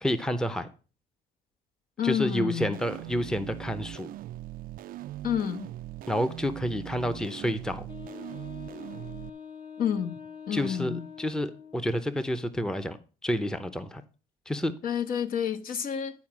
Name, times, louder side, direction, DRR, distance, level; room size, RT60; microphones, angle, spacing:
voice 1, 0.0-0.7 2.0-4.1 6.1-7.9 10.5-13.0 13.2-14.0 14.5-14.7, equal, 5° left, 0.7 m, -29 dB
voice 2, 2.0-2.8 5.2-5.7 9.8-10.2 10.5-11.1 14.8-16.1, left 8 dB, 55° left, 1.1 m, -29 dB
sound 1, 2.7-9.3, right 13 dB, 60° right, 0.4 m, -41 dB
Wind instrument woodwind instrument, 7.9-12.0, left 7 dB, 30° left, 1.0 m, -44 dB
10.5 x 4.7 x 6.0 m
cardioid pair, 110°, 17 cm